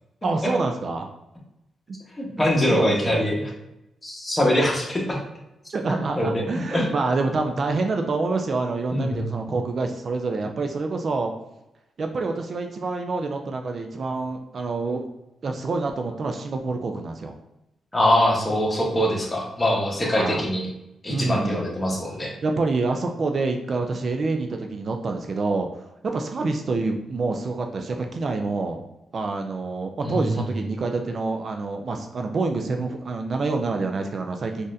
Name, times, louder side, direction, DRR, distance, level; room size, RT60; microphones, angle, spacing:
voice 1, 0.2-1.1 2.4-3.2 5.7-11.3 12.0-15.0 15.4-17.4 20.1-20.4 21.1-21.6 22.4-28.8 29.1-34.7, right 3 dB, 50° right, 4 dB, 0.4 m, -27 dB
voice 2, 2.2-3.5 4.0-5.2 6.2-6.4 6.7-6.9 8.9-9.6 17.9-20.7 21.0-22.3 30.0-30.3, left 1 dB, 20° left, -2 dB, 1.1 m, -23 dB
3.9 x 2.5 x 2.6 m, 0.90 s
cardioid pair, 75°, 0 cm